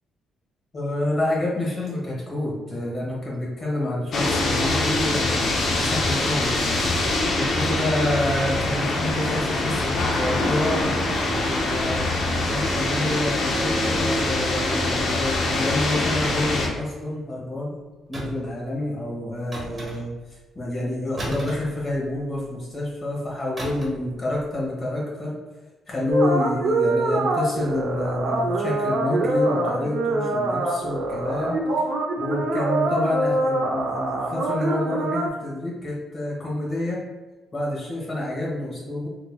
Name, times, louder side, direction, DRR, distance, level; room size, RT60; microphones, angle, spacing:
voice 1, 0.7-12.0 12.4-17.7 18.1-25.3 25.9-31.5 32.2-37.0 37.5-39.1, left 1 dB, 40° left, -4 dB, 1.5 m, -28 dB
sound 1, 4.1-16.7, left 2 dB, 65° left, 0.7 m, -24 dB
sound 2, 18.1-18.6 19.5-20.3 21.2-22.3 23.6-24.1 24.3-24.6, right 1 dB, 25° right, 1.3 m, -35 dB
sound 3, 26.1-35.3, right 2 dB, 75° right, 0.6 m, -24 dB
3.8 x 2.9 x 2.3 m, 1.2 s
cardioid pair, 90°, 0 cm